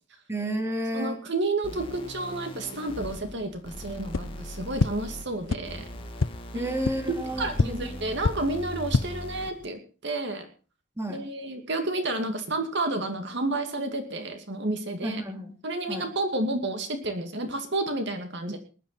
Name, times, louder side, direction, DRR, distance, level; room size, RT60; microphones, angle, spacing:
voice 1, 0.3-1.2 6.5-8.1 11.0-11.2 15.0-15.6 15.9-16.1, right 1 dB, 15° right, 4 dB, 2.7 m, -32 dB
voice 2, 0.9-5.8 6.5-6.7 7.4-10.5 11.1-15.2 15.6-18.6, right 2 dB, 60° right, 6 dB, 2.4 m, -30 dB
sound 1, 1.6-9.6, left 1 dB, 25° left, 2.2 m, -40 dB
sound 2, 4.1-4.2 4.8-4.9 5.5-5.6 6.2-6.3 6.8-6.9 7.5-7.6 8.2-8.3 8.8-9.0, left 3 dB, 85° left, 0.7 m, -23 dB
20.0 x 11.5 x 4.2 m, 0.36 s
head